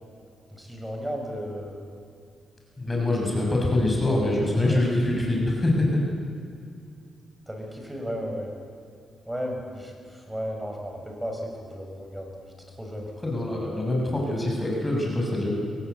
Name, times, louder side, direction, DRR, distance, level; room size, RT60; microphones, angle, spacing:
voice 1, 0.5-1.8 4.7-4.8 7.5-8.5 9.3-12.3 12.7-13.3, equal, 5° right, 1 dB, 6.4 m, -34 dB
voice 2, 2.8-6.0 13.2-15.5, left 1 dB, 20° left, -2 dB, 6.6 m, -24 dB
25.0 x 17.5 x 8.4 m, 2.4 s
cardioid pair, 90°, 0 cm